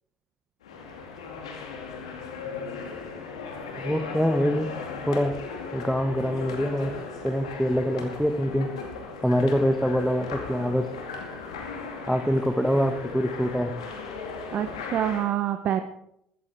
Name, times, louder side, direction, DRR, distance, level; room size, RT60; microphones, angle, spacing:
sound 1, 0.6-15.3, left 4 dB, 85° left, 2.2 m, -37 dB
voice 1, 3.8-4.7 5.1-5.3 5.7-6.9 7.2-8.7 9.2-10.9 12.1-13.7, equal, ahead, 6 dB, 1.4 m, -24 dB
voice 2, 14.5-15.8, right 10 dB, 55° right, 9 dB, 0.9 m, -26 dB
15.5 x 14.0 x 3.5 m, 0.74 s
hypercardioid pair, 55°, 3 cm